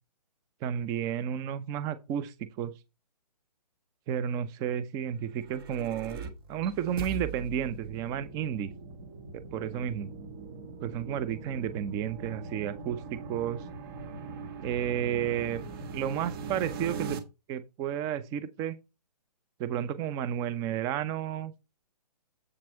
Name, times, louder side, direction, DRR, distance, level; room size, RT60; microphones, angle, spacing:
voice 1, 0.6-2.7 4.1-6.2 6.5-8.7 9.5-10.1 10.8-13.6 14.6-15.6 15.9-17.2 17.5-18.8 19.6-21.5, right 9 dB, 15° right, 0.6 m, -32 dB
sound 1, 5.1-17.2, right 4 dB, 35° right, 1.6 m, -41 dB
8.0 x 5.9 x 4.4 m
hypercardioid pair, 145°, 21 cm